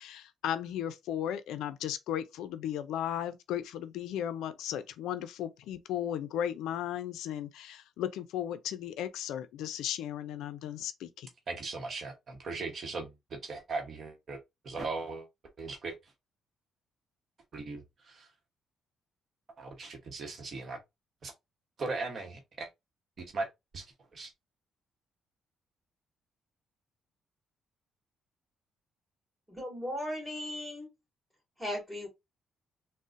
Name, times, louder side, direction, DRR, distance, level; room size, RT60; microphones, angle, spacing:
voice 1, 0.0-11.3, left 10 dB, 90° left, 0.3 m, -35 dB
voice 2, 11.5-15.3 15.6-15.9 17.5-18.3 19.6-20.8 21.2-21.3 21.8-22.7 23.2-23.9 24.1-24.3, right 3 dB, 50° right, 0.8 m, -38 dB
voice 3, 29.5-30.9 31.6-32.1, left 1 dB, 5° right, 1.8 m, -37 dB
3.8 x 2.0 x 2.4 m
cardioid pair, 90°, 0 cm